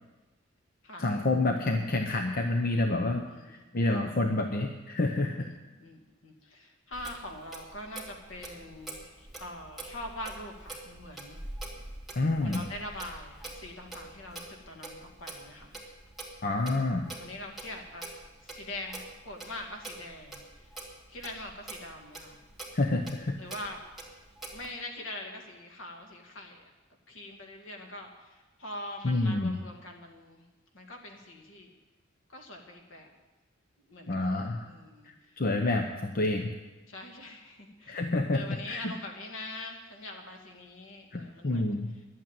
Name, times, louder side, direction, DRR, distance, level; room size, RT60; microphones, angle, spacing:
voice 1, 1.0-5.5 12.1-12.7 16.4-17.0 22.7-23.3 29.0-29.5 34.1-34.6 35.0-36.5 37.9-38.9 41.1-41.9, left 2 dB, 50° left, 4 dB, 0.8 m, -28 dB
voice 2, 3.3-3.7 5.4-11.4 12.4-15.7 16.7-20.7 21.1-22.4 23.4-23.9 24.5-26.7 27.1-30.4 30.7-31.7 32.3-33.1 33.8-35.1 36.9-41.8, left 1 dB, 70° left, 2 dB, 2.0 m, -43 dB
Clock, 6.9-24.7, right 2 dB, ahead, 2.5 m, -45 dB
11.0 x 8.6 x 8.9 m, 1.2 s
head